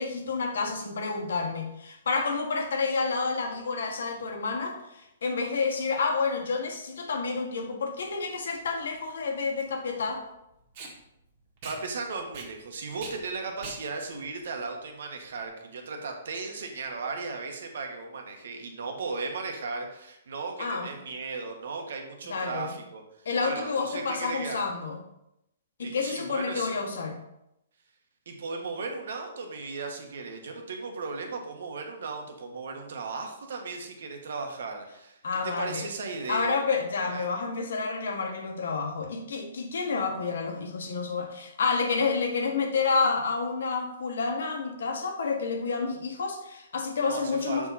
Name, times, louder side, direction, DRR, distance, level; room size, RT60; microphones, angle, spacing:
voice 1, 0.0-10.2 20.6-20.9 22.3-22.7 23.2-25.0 25.8-27.2 35.2-35.9 36.3-47.7, left 4 dB, 75° left, 3 dB, 1.5 m, -29 dB
Packing tape duct tape, 8.0-15.5, right 3 dB, 35° right, 1.6 m, -46 dB
voice 2, 11.6-24.7 25.8-26.7 28.3-36.6 37.0-37.3 47.0-47.7, right 4 dB, 70° right, 3 dB, 1.4 m, -36 dB
6.9 x 4.9 x 4.2 m, 0.83 s
hypercardioid pair, 165°, 0 cm